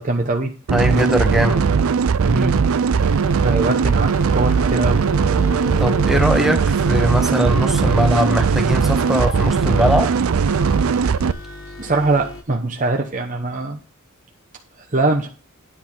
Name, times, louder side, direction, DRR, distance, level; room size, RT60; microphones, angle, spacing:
voice 1, 0.0-0.5 2.2-2.5 3.4-5.0 11.8-13.8 14.8-15.3, right 2 dB, 40° right, 1.0 m, -22 dB
voice 2, 0.7-1.7 5.8-10.2, equal, ahead, 1.3 m, -20 dB
sound 1, 0.7-11.3, right 6 dB, 80° right, 0.5 m, -18 dB
sound 2, 3.0-12.4, left 2 dB, 75° left, 1.5 m, -36 dB
10.0 x 4.2 x 7.3 m
head